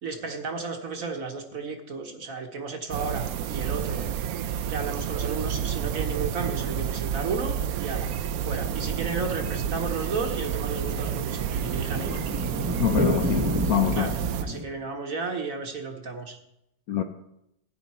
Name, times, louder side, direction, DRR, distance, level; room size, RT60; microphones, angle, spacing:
voice 1, 0.0-4.1 4.7-8.1 8.4-12.2 13.9-16.4, right 4 dB, 50° right, 1.3 m, -33 dB
sound 1, 2.9-14.4, right 9 dB, 75° right, 0.8 m, -30 dB
sound 2, 8.0-14.6, equal, 10° right, 0.8 m, -32 dB
voice 2, 12.8-14.1 16.9-17.0, left 10 dB, 70° left, 0.9 m, -25 dB
14.0 x 9.8 x 4.3 m
omnidirectional pair, 2.1 m